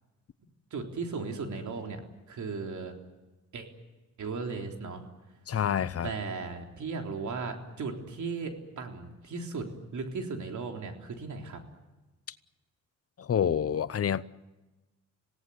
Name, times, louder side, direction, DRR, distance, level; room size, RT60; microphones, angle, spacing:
voice 1, 0.7-2.0 2.3-3.0 3.5-3.7 4.2-5.1 6.0-11.6, right 4 dB, 75° right, 3.7 m, -36 dB
voice 2, 5.5-6.1 13.2-14.2, left 8 dB, 50° left, 0.8 m, -28 dB
26.5 x 18.0 x 9.5 m
cardioid pair, 100°, 30 cm